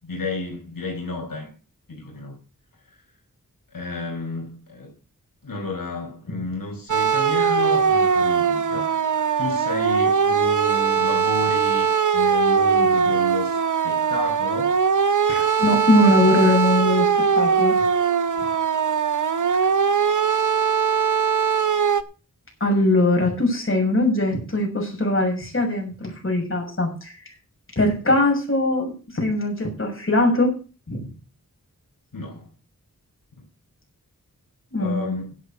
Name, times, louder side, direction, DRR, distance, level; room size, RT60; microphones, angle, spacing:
voice 1, 0.0-1.5 1.9-2.4 2.8-3.0 3.7-4.9 5.4-14.8 32.1-32.5 33.4-33.5 34.8-35.3, left 3 dB, 80° left, 4.9 m, -32 dB
sound 1, 6.9-22.0, right 6 dB, 65° right, 1.0 m, -20 dB
voice 2, 15.3-17.1 17.3-17.8 22.6-27.2 27.8-30.5 30.9-31.0 34.7-35.1, left 1 dB, 40° left, 6.5 m, -21 dB
11.0 x 8.3 x 6.7 m
wide cardioid pair, 75°, 33 cm